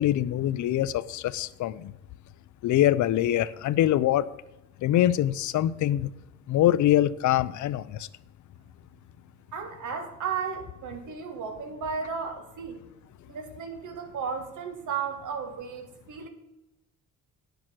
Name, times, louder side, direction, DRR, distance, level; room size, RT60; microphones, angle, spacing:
voice 1, 0.0-1.9 2.6-4.3 4.8-6.1 6.5-8.0, left 13 dB, 70° left, 16 dB, 0.6 m, -24 dB
voice 2, 9.5-12.8 13.3-16.3, right 6 dB, 75° right, 7 dB, 1.9 m, -34 dB
10.0 x 6.9 x 6.1 m, 0.95 s
cardioid pair, 135°, 30 cm